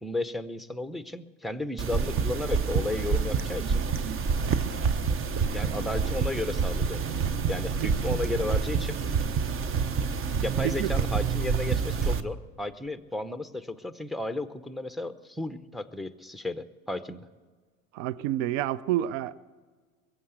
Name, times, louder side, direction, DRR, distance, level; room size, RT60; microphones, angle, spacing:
voice 1, 0.0-3.8 5.5-7.0 7.5-9.0 10.4-17.2, left 2 dB, ahead, 0.7 m, -33 dB
sound 1, 1.8-12.2, right 5 dB, 30° right, 0.9 m, -27 dB
voice 2, 17.9-19.3, right 13 dB, 65° right, 0.6 m, -28 dB
22.0 x 7.9 x 8.1 m
hypercardioid pair, 75°, 41 cm